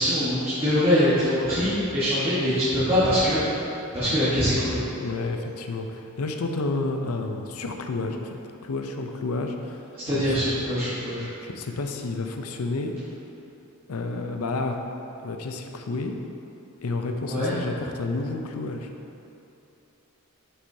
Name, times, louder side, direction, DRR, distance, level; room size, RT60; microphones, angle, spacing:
voice 1, 0.0-3.6 3.9-4.8 10.0-11.3 17.3-17.5, equal, 25° right, -12 dB, 1.3 m, -23 dB
voice 2, 4.9-10.3 11.4-12.9 13.9-14.8 15.2-16.1 16.8-18.9, left 3 dB, 85° left, 5 dB, 0.6 m, -30 dB
7.9 x 6.1 x 2.7 m, 2.9 s
head